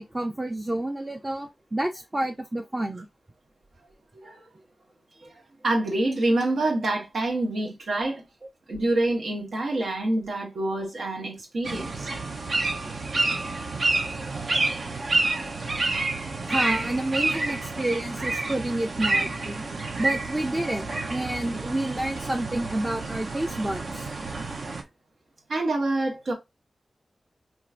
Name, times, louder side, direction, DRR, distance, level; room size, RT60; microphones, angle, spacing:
voice 1, 0.0-3.1 16.5-19.6 20.0-24.1, right 1 dB, 20° right, 0.5 m, -29 dB
voice 2, 5.6-8.2 8.7-12.1 14.4-14.6 25.5-26.3, right 2 dB, 85° right, 1.2 m, -26 dB
sound 1, 11.6-24.8, right 2 dB, 70° right, 0.7 m, -29 dB
4.6 x 3.0 x 2.4 m
wide cardioid pair, 95°, 0 cm